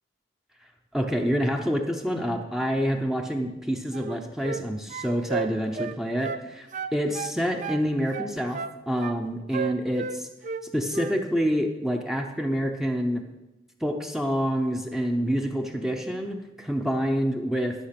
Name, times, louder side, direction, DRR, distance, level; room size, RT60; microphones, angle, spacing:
voice 1, 0.9-8.6 8.9-10.3 10.6-13.2 13.8-17.7, equal, ahead, 3 dB, 0.7 m, -27 dB
sound 1, 3.9-4.6 4.9-6.4 6.7-7.8 8.1-9.2 9.5-10.6 10.9-11.2, right 5 dB, 45° right, 0.4 m, -33 dB
12.0 x 5.7 x 5.9 m, 1.0 s
head